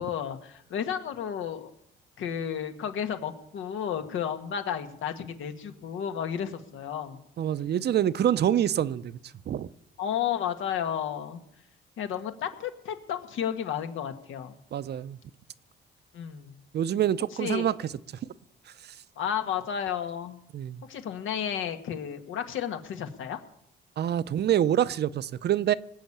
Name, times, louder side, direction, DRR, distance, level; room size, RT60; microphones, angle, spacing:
voice 1, 0.0-1.7 2.2-7.3 10.0-11.4 12.0-14.6 16.1-16.6 17.4-17.7 19.1-20.4 20.9-23.4, left 8 dB, 80° left, 1.6 m, -32 dB
voice 2, 7.4-9.2 9.5-9.7 14.7-15.2 16.7-17.7 20.5-20.8 24.0-25.7, right 10 dB, 55° right, 0.6 m, -26 dB
20.0 x 7.0 x 8.7 m
cardioid pair, 90°, 20 cm